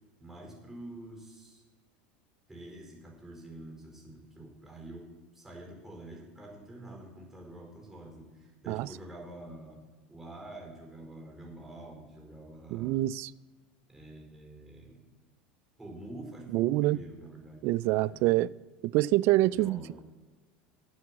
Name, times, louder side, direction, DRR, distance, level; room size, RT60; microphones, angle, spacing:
voice 1, 0.2-1.6 2.5-9.8 10.1-13.1 13.9-15.0 15.8-17.7 18.1-18.3 19.4-20.0, right 1 dB, 10° right, 4.4 m, -47 dB
voice 2, 12.7-13.3 16.5-17.0 17.6-18.5 18.8-20.0, right 17 dB, 55° right, 0.3 m, -26 dB
9.2 x 8.3 x 7.5 m
supercardioid pair, 115°, 5 cm